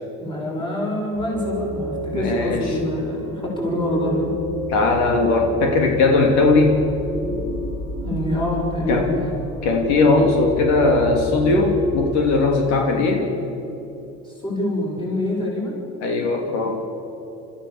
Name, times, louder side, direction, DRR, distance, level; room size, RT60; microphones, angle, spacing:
voice 1, 0.2-4.3 8.0-9.4 14.2-15.8, left 1 dB, 15° left, -3 dB, 6.6 m, -25 dB
sound 1, 1.1-12.1, left 1 dB, 40° left, 6.8 m, -31 dB
voice 2, 2.1-2.7 4.7-6.8 8.9-9.1 9.6-13.3 16.0-16.8, left 3 dB, 75° left, 2 dB, 3.0 m, -18 dB
29.5 x 14.5 x 7.3 m, 2.9 s
cardioid pair, 165°, 29 cm